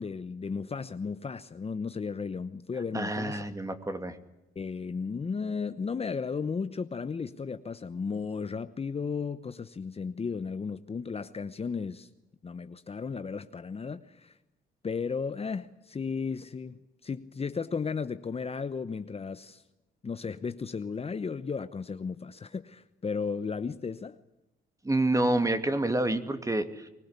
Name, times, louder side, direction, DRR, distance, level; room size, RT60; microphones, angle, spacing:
voice 1, 0.0-3.4 4.6-12.1 12.4-14.3 14.8-19.6 20.0-24.2, left 5 dB, 30° left, 0.9 m, -34 dB
voice 2, 2.9-4.2 24.8-26.9, right 1 dB, 15° right, 2.6 m, -28 dB
24.5 x 20.5 x 8.3 m
cardioid pair, 90°, 20 cm